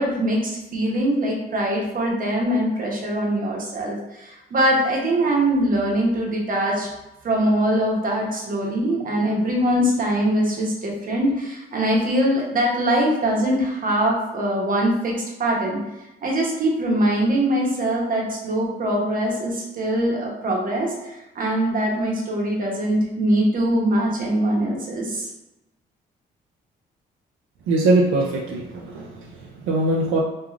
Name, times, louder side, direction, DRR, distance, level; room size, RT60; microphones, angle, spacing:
voice 1, 0.0-6.9 7.2-15.1 15.4-15.8 16.2-25.3, right 1 dB, 45° right, -1 dB, 0.8 m, -22 dB
voice 2, 27.7-30.2, right 2 dB, 80° right, -1 dB, 0.4 m, -22 dB
3.1 x 2.3 x 2.4 m, 0.95 s
cardioid pair, 90°, 20 cm